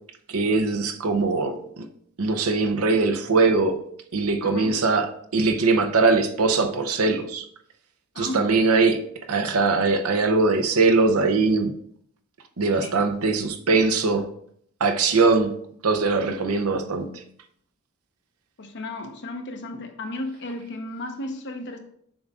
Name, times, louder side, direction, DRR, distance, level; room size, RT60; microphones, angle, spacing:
voice 1, 0.3-1.8 2.2-3.8 4.1-7.5 8.2-9.0 9.3-11.7 12.6-14.3 14.8-15.5 15.8-17.1, right 3 dB, 80° right, 7 dB, 0.7 m, -21 dB
voice 2, 4.4-4.8 8.1-8.5 12.8-13.0 18.6-21.8, left 2 dB, 55° left, 4 dB, 0.9 m, -34 dB
7.0 x 6.5 x 2.4 m, 0.66 s
head